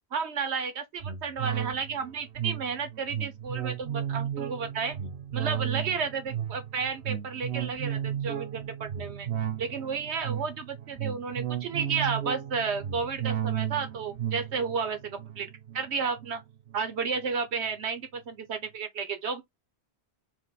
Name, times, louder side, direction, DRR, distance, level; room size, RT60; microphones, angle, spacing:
voice 1, 0.1-5.0 5.3-9.3 9.6-16.4 16.7-19.4, right 5 dB, 90° right, 1.2 m, -32 dB
sound 1, 1.0-16.8 17.2-17.3, right 10 dB, 65° right, 0.9 m, -34 dB
4.4 x 2.2 x 4.1 m
omnidirectional pair, 1.1 m